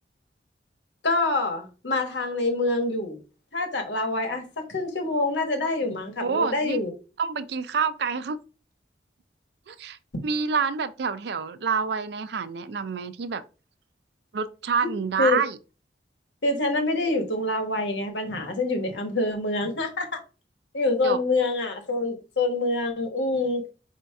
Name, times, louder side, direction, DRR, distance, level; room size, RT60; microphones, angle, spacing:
voice 1, 1.0-3.2 3.5-6.9 14.8-14.9 15.2-15.4 16.4-20.2 20.7-23.7, left 2 dB, 90° left, 1.2 m, -26 dB
voice 2, 6.2-6.8 7.2-8.4 9.7-10.0 10.2-13.4 14.3-15.6 21.0-21.2, right 5 dB, 65° right, 0.4 m, -27 dB
4.2 x 2.7 x 4.6 m
head